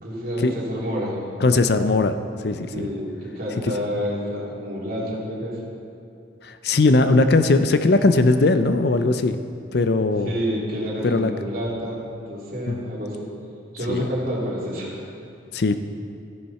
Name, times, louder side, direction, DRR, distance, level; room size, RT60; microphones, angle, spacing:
voice 1, 0.0-1.2 2.7-5.6 10.2-13.3 13.7-14.9, equal, 50° right, -6 dB, 3.1 m, -28 dB
voice 2, 1.4-2.2 2.4-2.9 6.4-9.4 9.7-10.4 11.0-11.3 12.7-12.8 13.9-14.0 15.5-15.8, left 3 dB, 55° left, 9 dB, 0.5 m, -19 dB
14.5 x 10.5 x 4.2 m, 2.6 s
head